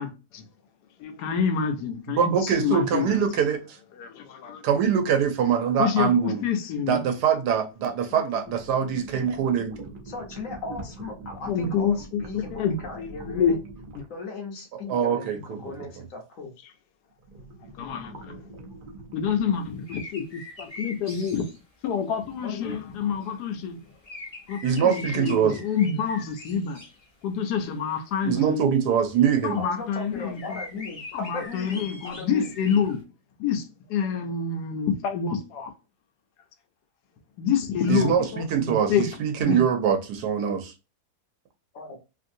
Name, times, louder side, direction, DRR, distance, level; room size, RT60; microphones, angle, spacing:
voice 1, 0.0-0.5 1.0-3.2 4.0-4.7 5.8-7.0 8.1-8.2 11.4-13.6 13.9-14.0 17.8-18.4 19.1-21.4 21.8-23.8 24.5-26.8 27.2-28.7 29.4-30.6 31.1-33.0 33.4-35.7 37.4-38.2 38.6-39.1 39.4-39.6, left 7 dB, 80° left, 1.2 m, -27 dB
voice 2, 2.1-3.6 4.6-6.4 6.9-9.7 14.9-15.9 24.6-25.6 28.2-29.6 37.9-40.7, right 8 dB, 90° right, 1.3 m, -23 dB
sound 1, 7.8-7.9 8.4-14.2 17.1-19.5, right 3 dB, 60° right, 0.5 m, -43 dB
voice 3, 10.0-13.6 14.1-16.5 22.4-22.8 29.6-32.5 37.7-38.5 41.7-42.0, left 3 dB, 60° left, 1.1 m, -37 dB
sound 2, 19.6-21.6 23.2-23.3 24.0-27.1 27.4-28.0 28.4-28.5 29.1-29.2 29.5-29.7 29.9-30.0 30.3-33.0, left 2 dB, 35° left, 0.7 m, -42 dB
3.2 x 2.6 x 2.6 m
omnidirectional pair, 1.7 m